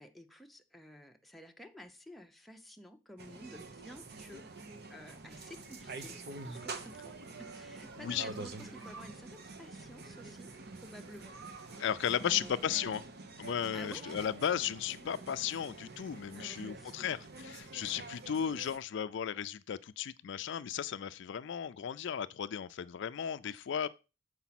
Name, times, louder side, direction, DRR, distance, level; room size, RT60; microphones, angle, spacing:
voice 1, 0.0-4.5 4.9-10.5 10.8-11.8 12.2-13.0 13.7-14.1 16.3-17.2 23.4-23.8, equal, ahead, 0.6 m, -52 dB
sound 1, 3.2-18.8, right 3 dB, 60° right, 0.9 m, -47 dB
sound 2, 5.8-12.3, right 4 dB, 85° right, 1.0 m, -57 dB
voice 2, 11.8-13.0 13.4-23.9, left 8 dB, 65° left, 0.4 m, -35 dB
7.1 x 4.8 x 5.8 m
head